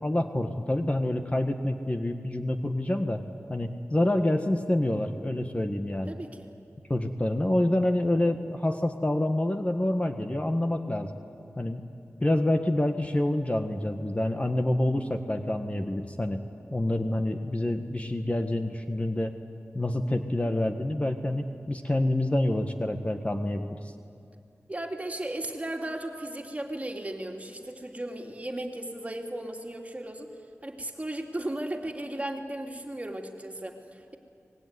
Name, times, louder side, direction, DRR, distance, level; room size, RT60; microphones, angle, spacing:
voice 1, 0.0-3.2 3.5-6.1 6.9-11.1 11.6-11.8 12.2-16.4 16.7-19.3 19.7-23.8, left 1 dB, 25° left, 6 dB, 1.4 m, -27 dB
voice 2, 6.1-6.5 24.7-30.3 30.6-34.2, right 1 dB, 25° right, 2 dB, 3.0 m, -36 dB
25.0 x 20.0 x 9.7 m, 2.4 s
wide cardioid pair, 55°, 5 cm